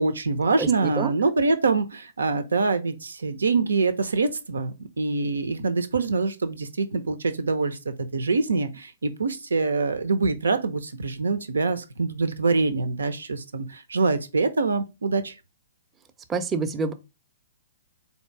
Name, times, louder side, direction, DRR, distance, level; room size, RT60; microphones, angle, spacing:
voice 1, 0.0-7.8 8.1-15.3, right 3 dB, 85° right, 0.7 m, -25 dB
voice 2, 0.6-1.1 16.3-16.9, right 4 dB, 15° right, 0.6 m, -27 dB
3.9 x 2.9 x 4.6 m
hypercardioid pair, 125°, 0 cm